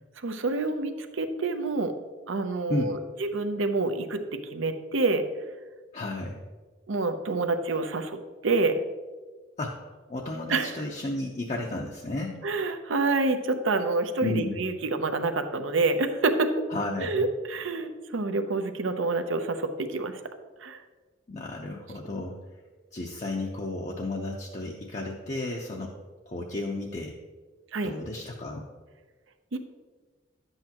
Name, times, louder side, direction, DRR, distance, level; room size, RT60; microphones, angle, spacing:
voice 1, 0.2-1.9 2.3-5.3 6.9-8.2 8.4-8.8 10.5-10.8 12.4-16.5 17.0-20.2 20.6-20.8 27.7-27.9 29.5-29.6, right 3 dB, 80° right, 7 dB, 0.7 m, -27 dB
voice 2, 5.9-6.4 9.6-9.8 10.1-12.4 14.2-14.6 16.7-17.3 21.3-22.4 22.9-25.9 26.3-27.2 27.8-28.6, left 2 dB, 35° left, -1 dB, 0.6 m, -33 dB
10.5 x 8.0 x 2.9 m, 1.4 s
head